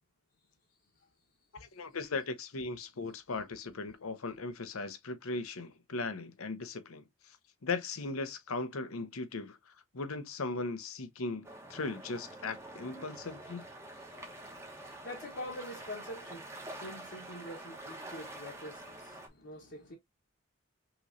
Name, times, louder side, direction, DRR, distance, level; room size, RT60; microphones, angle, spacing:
voice 1, 0.7-1.1 1.4-1.8 13.9-20.0, left 1 dB, 50° left, 1.0 m, -46 dB
voice 2, 1.6-7.4 7.6-13.7, left 3 dB, 85° left, 0.8 m, -38 dB
sound 1, 11.4-19.3, right 1 dB, 15° right, 0.9 m, -47 dB
5.8 x 3.0 x 2.5 m
head